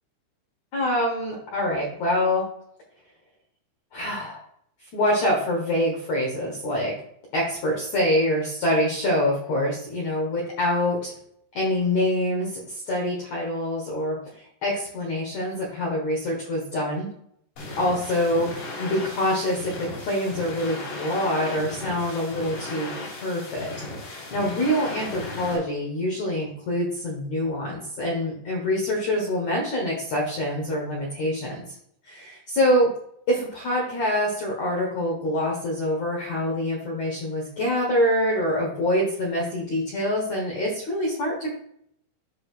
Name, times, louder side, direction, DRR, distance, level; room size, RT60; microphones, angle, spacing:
voice 1, 0.7-2.4 3.9-4.4 4.9-6.9 7.3-11.1 11.5-17.1 17.8-23.7 24.0-31.7 32.0-32.9 33.3-41.5, left 1 dB, 85° left, -2 dB, 1.6 m, -25 dB
sound 1, 17.6-25.6, left 2 dB, 65° left, 5.5 m, -36 dB
13.5 x 4.7 x 2.5 m, 0.69 s
omnidirectional pair, 5.9 m